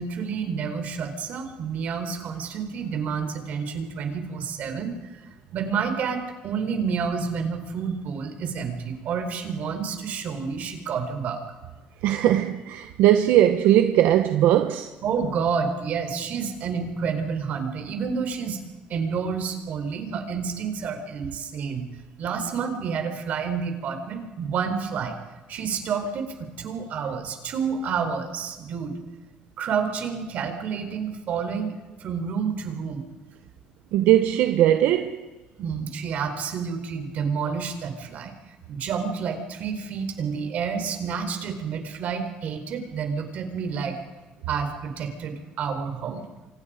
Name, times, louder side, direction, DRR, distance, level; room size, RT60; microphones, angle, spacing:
voice 1, 0.0-5.0 5.5-11.4 15.0-18.6 18.9-21.8 22.2-25.2 25.5-28.9 29.6-31.7 32.0-33.0 35.6-38.3 38.7-44.0 44.5-46.3, right 6 dB, 55° right, 4.4 m, -29 dB
voice 2, 12.0-14.9 33.9-35.2, right 12 dB, 80° right, 1.2 m, -19 dB
29.5 x 25.5 x 5.2 m
cardioid pair, 140°, 3 cm